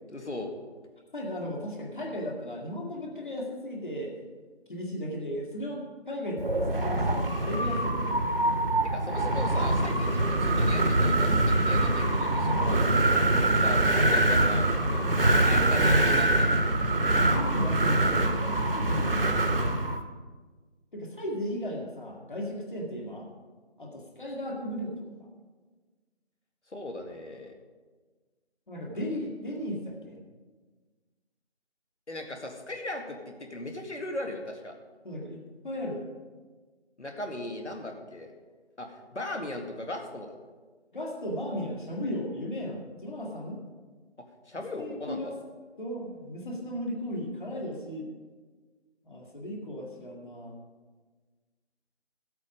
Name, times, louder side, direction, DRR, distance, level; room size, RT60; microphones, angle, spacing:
voice 1, 0.1-0.5 8.8-12.9 13.6-15.1 15.4-16.9 26.7-27.5 32.1-34.8 37.0-38.3 38.8-40.3 44.5-45.3, left 2 dB, 80° left, 3 dB, 2.1 m, -38 dB
voice 2, 1.1-4.1 4.7-8.2 12.7-13.5 17.0-19.7 20.9-23.3 23.8-25.1 28.7-30.2 35.0-35.4 35.6-36.1 40.9-43.6 44.8-45.3 45.8-48.1 49.0-50.5, equal, 45° left, -1 dB, 2.1 m, -36 dB
Wind, 6.4-20.0, right 1 dB, 55° right, 1.1 m, -24 dB
15.0 x 8.3 x 5.2 m, 1.4 s
figure-of-eight pair, 170°, 34 cm